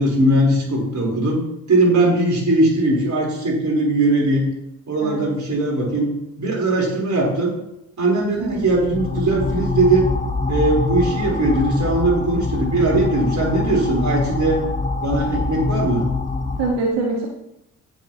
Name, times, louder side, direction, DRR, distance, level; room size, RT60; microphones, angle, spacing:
voice 1, 0.0-1.4 1.7-4.4 4.9-6.1 6.4-7.5 8.0-10.1 10.5-14.6 15.0-16.1, right 2 dB, 40° right, -2 dB, 4.3 m, -19 dB
sound 1, 8.4-16.7, left 3 dB, 15° left, 1.2 m, -25 dB
voice 2, 16.6-17.3, right 3 dB, 70° right, -1 dB, 1.8 m, -24 dB
18.0 x 6.2 x 3.1 m, 0.82 s
figure-of-eight pair, 40°, 45 cm